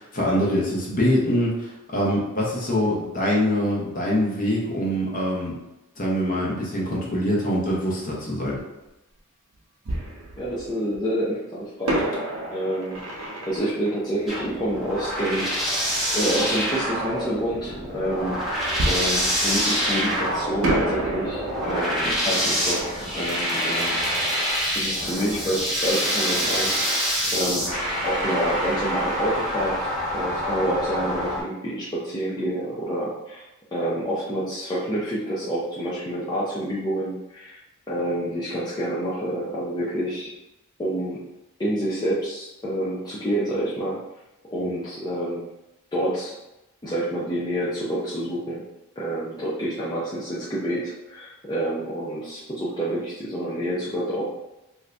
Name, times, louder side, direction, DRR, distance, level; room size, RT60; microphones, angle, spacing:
voice 1, 0.0-5.5 6.0-8.6, equal, 40° left, -4 dB, 0.9 m, -24 dB
Fireworks, 9.9-11.0 11.9-15.3 18.8-20.2 20.6-25.2 25.4-25.5 26.0-26.3, right 1 dB, 70° right, 0.7 m, -31 dB
voice 2, 10.4-12.1 12.5-15.8 16.1-18.4 18.9-24.1 24.7-26.7 27.3-27.8 28.0-37.6 37.9-40.3 40.8-41.3 41.6-44.0 44.5-45.4 45.9-46.3 46.8-48.6 49.0-54.3, right 1 dB, 20° left, -8 dB, 0.5 m, -28 dB
sound 1, 14.3-31.4, equal, ahead, 1.0 m, -26 dB
2.7 x 2.5 x 3.3 m, 0.94 s
head